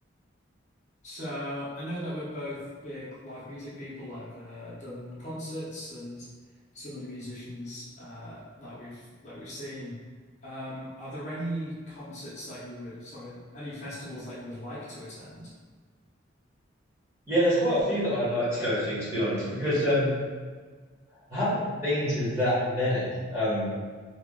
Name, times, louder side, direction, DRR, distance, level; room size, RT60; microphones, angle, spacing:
voice 1, 1.0-6.3 6.7-9.9 10.4-15.5, equal, 35° left, -9 dB, 0.7 m, -38 dB
voice 2, 17.3-20.1 21.3-23.7, equal, 15° right, -11 dB, 1.2 m, -26 dB
2.9 x 2.4 x 3.6 m, 1.5 s
head